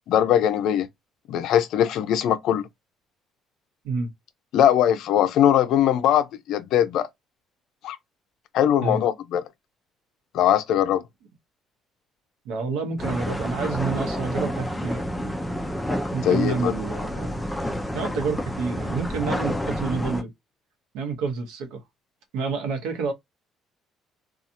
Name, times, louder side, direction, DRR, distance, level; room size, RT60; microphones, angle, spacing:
voice 1, 0.1-0.9 1.3-2.7 4.5-7.1 7.8-8.0 8.5-9.4 10.3-11.0 16.2-16.7, left 10 dB, 70° left, 0.4 m, -21 dB
voice 2, 12.4-15.4 16.1-17.4 17.9-20.3 20.9-21.8 22.3-23.1, right 4 dB, 90° right, 0.9 m, -29 dB
sound 1, 13.0-20.2, equal, 5° left, 0.5 m, -29 dB
2.7 x 2.3 x 2.6 m
cardioid pair, 110°, 0 cm